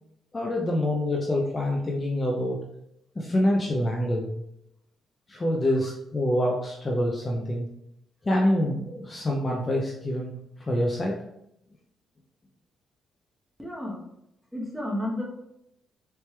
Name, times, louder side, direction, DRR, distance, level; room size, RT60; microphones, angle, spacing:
voice 1, 0.3-2.6 3.2-4.3 5.3-7.7 8.3-10.3 10.7-11.1, left 1 dB, 25° left, -2 dB, 0.7 m, -26 dB
voice 2, 13.6-14.0 14.5-15.2, left 1 dB, 5° right, -3 dB, 1.4 m, -31 dB
4.2 x 3.4 x 3.3 m, 0.80 s
cardioid pair, 90°, 0 cm